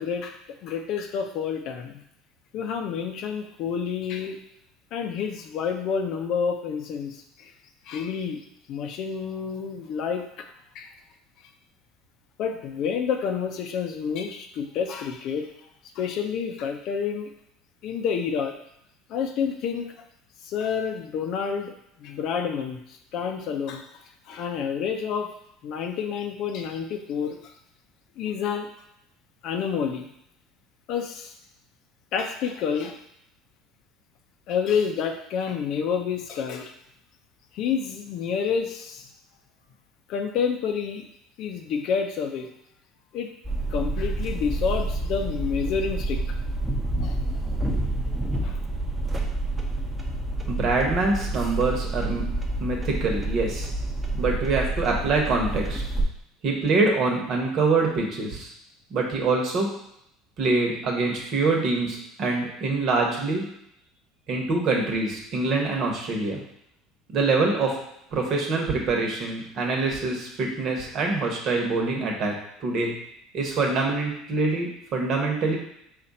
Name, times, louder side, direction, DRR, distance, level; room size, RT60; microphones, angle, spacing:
voice 1, 0.0-2.0 2.5-4.4 4.9-7.5 7.9-8.4 8.7-10.5 10.7-10.9 12.4-15.5 16.0-17.3 17.8-18.5 19.1-19.9 20.4-21.7 22.0-23.8 24.3-25.3 25.6-27.5 28.2-28.7 29.4-30.1 30.9-31.3 32.1-33.0 34.5-36.7 37.5-39.1 40.1-41.0 41.4-42.5 43.1-43.3 43.7-46.2 47.0-47.2 48.4-48.6, left 6 dB, 60° left, 5 dB, 0.6 m, -29 dB
sound 1, 43.4-56.0, right 2 dB, 10° right, 0.9 m, -28 dB
voice 2, 50.5-52.2 52.6-53.7 54.1-55.8 56.4-58.5 58.9-59.7 60.4-63.4 64.3-66.4 67.1-67.8 68.1-72.9 73.3-75.5, right 3 dB, 55° right, 0 dB, 1.2 m, -25 dB
4.2 x 2.5 x 4.1 m, 0.74 s
hypercardioid pair, 85°, 0 cm